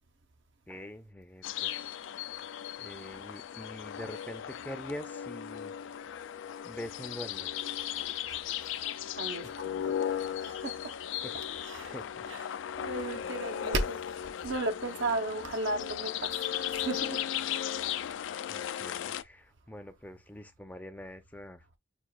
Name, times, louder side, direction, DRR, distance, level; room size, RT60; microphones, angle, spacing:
voice 1, 0.7-2.0 2.8-5.7 6.6-7.5 11.2-12.3 13.2-13.3 18.5-21.7, left 1 dB, 10° left, 0.5 m, -45 dB
sound 1, 1.4-19.2, left 10 dB, 75° left, 0.3 m, -36 dB
voice 2, 8.3-10.9 11.7-11.9 12.8-14.0 14.4-16.4 16.7-17.2, right 2 dB, 75° right, 0.8 m, -35 dB
6.0 x 2.4 x 2.2 m
head